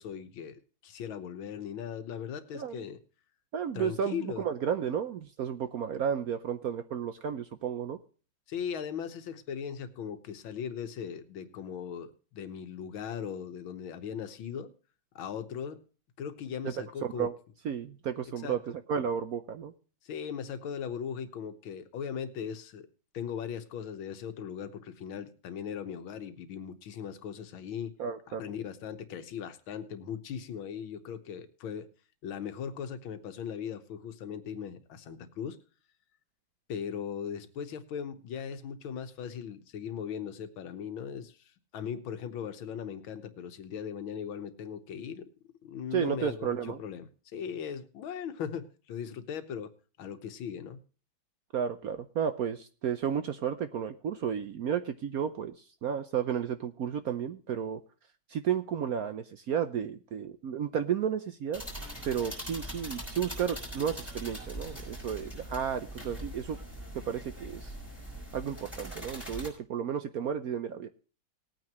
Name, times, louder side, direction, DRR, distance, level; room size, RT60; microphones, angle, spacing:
voice 1, 0.0-3.0 3.7-4.5 8.5-14.7 15.2-15.8 16.2-17.3 18.4-18.6 20.0-22.9 23.1-27.9 28.3-31.9 32.2-35.6 36.7-45.3 45.6-49.7 50.0-50.8, left 8 dB, 85° left, 10 dB, 1.9 m, -39 dB
voice 2, 3.5-8.0 16.6-16.7 17.1-17.3 17.6-19.7 28.0-28.4 45.9-46.8 51.5-57.8 58.3-61.6 62.0-66.6 67.0-67.7 68.3-70.9, right 8 dB, 65° right, 10 dB, 0.9 m, -32 dB
sound 1, 61.5-69.5, equal, ahead, 5.2 m, -42 dB
19.5 x 9.1 x 3.0 m, 0.37 s
omnidirectional pair, 2.1 m